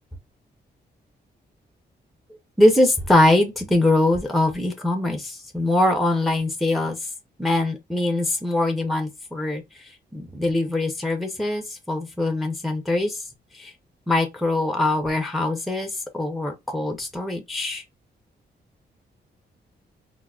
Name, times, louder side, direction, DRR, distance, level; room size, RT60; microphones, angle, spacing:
voice 1, 2.6-7.0 7.4-13.2 13.5-13.7 14.1-17.8, left 1 dB, ahead, 0.5 m, -22 dB
3.5 x 2.0 x 2.3 m
wide cardioid pair, 140°, 18 cm